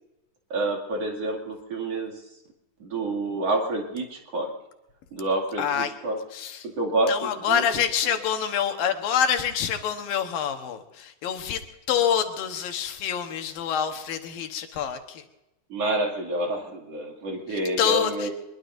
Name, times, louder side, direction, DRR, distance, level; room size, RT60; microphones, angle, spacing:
voice 1, 0.5-2.2 2.8-4.5 5.1-6.2 6.6-7.6 15.7-18.3, right 2 dB, 50° right, 0 dB, 3.3 m, -28 dB
voice 2, 5.6-5.9 6.3-6.7 7.1-15.2 17.8-18.3, left 8 dB, 85° left, 6 dB, 3.1 m, -26 dB
23.5 x 22.0 x 2.7 m, 0.92 s
omnidirectional pair, 4.0 m